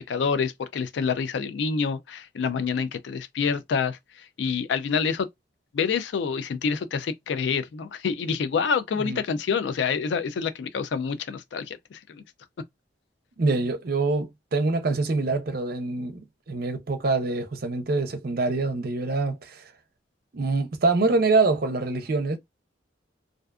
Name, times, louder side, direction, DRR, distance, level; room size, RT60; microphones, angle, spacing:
voice 1, 0.0-5.3 5.7-12.2, left 6 dB, 70° left, 0.3 m, -27 dB
voice 2, 13.4-16.2 16.5-19.6 20.3-22.4, right 3 dB, 55° right, 0.6 m, -25 dB
2.5 x 2.4 x 2.2 m
head